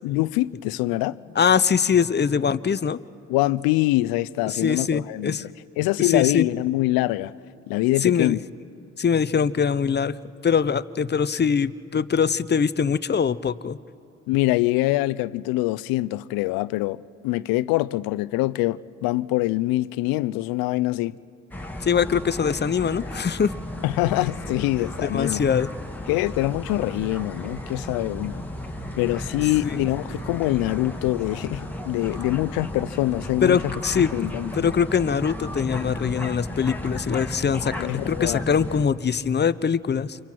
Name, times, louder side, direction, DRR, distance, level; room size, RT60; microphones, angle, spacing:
voice 1, 0.0-1.3 3.3-5.5 5.8-7.3 7.7-8.4 14.3-21.1 23.8-25.4 26.1-28.4 29.0-34.7 37.6-38.4, left 18 dB, 75° left, 0.6 m, -24 dB
voice 2, 1.4-3.0 4.5-5.4 6.0-6.5 8.0-8.4 9.0-10.2 10.4-13.8 21.8-23.5 25.0-25.7 29.6-29.8 33.4-34.1 34.5-40.2, left 6 dB, 30° left, 0.8 m, -22 dB
sound 1, 21.5-38.9, left 1 dB, 5° left, 2.5 m, -34 dB
29.0 x 27.0 x 4.6 m
hypercardioid pair, 55°, 36 cm